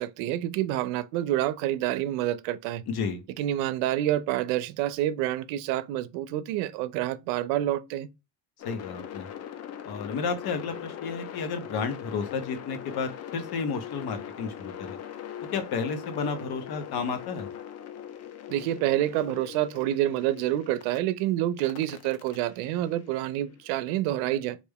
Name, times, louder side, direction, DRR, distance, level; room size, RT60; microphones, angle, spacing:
voice 1, 0.0-2.8 3.4-8.1 18.5-24.6, right 13 dB, 80° right, 0.5 m, -28 dB
voice 2, 2.9-3.2 8.6-9.3 9.9-15.0 15.5-17.5, left 5 dB, 50° left, 0.9 m, -32 dB
sound 1, 8.6-21.0 21.6-23.7, left 10 dB, 35° left, 0.4 m, -41 dB
3.3 x 2.5 x 3.5 m
supercardioid pair, 105°, 48 cm